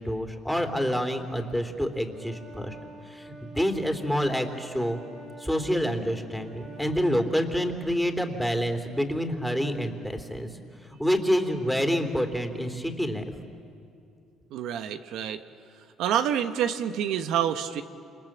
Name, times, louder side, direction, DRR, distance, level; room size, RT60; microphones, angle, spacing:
voice 1, 0.0-2.8 3.1-5.0 5.4-10.5 11.0-13.3, equal, ahead, 6 dB, 3.2 m, -27 dB
Wind instrument woodwind instrument, 2.1-7.2, right 2 dB, 60° right, 6.4 m, -47 dB
voice 2, 14.5-15.4 16.0-17.8, right 9 dB, 75° right, 8 dB, 1.2 m, -27 dB
28.5 x 27.5 x 7.5 m, 2.5 s
supercardioid pair, 80°, 0 cm